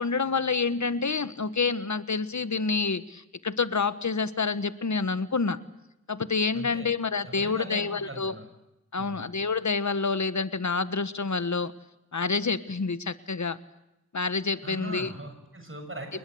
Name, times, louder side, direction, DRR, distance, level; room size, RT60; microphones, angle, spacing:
voice 1, 0.0-5.6 6.1-8.3 8.9-11.7 12.1-13.6 14.1-15.1, left 4 dB, 75° left, 13 dB, 1.4 m, -28 dB
voice 2, 6.5-6.9 7.2-8.5 9.0-9.3 14.6-16.2, right 1 dB, 45° right, 6 dB, 6.9 m, -40 dB
28.5 x 20.5 x 7.9 m, 0.89 s
wide cardioid pair, 60°, 29 cm